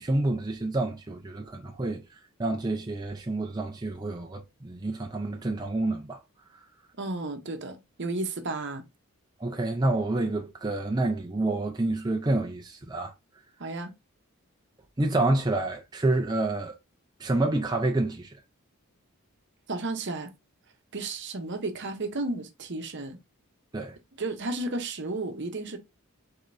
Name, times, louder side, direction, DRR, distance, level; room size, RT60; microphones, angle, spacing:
voice 1, 0.0-2.0 2.4-6.2 9.4-13.1 15.0-16.7 17.2-18.3 23.7-24.0, right 2 dB, 20° right, 0.5 m, -28 dB
voice 2, 7.0-8.8 13.6-13.9 19.7-20.3 20.9-23.2 24.2-25.8, right 2 dB, 55° right, 0.9 m, -33 dB
5.0 x 3.8 x 2.6 m
head